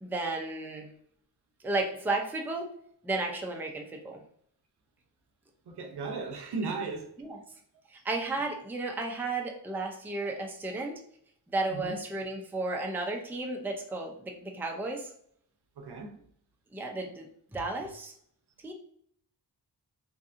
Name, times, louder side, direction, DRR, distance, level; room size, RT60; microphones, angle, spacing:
voice 1, 0.0-0.9 1.6-2.7 3.0-4.2 7.2-7.4 7.9-11.0 11.5-15.1 16.7-17.3 17.5-18.1 18.6-18.7, right 2 dB, 5° right, 0.3 m, -33 dB
voice 2, 5.7-7.1 9.7-9.9 10.7-10.8 11.7-11.9 15.8-16.2, right 4 dB, 80° right, 0.6 m, -36 dB
2.6 x 2.5 x 2.4 m
wide cardioid pair, 120°, 39 cm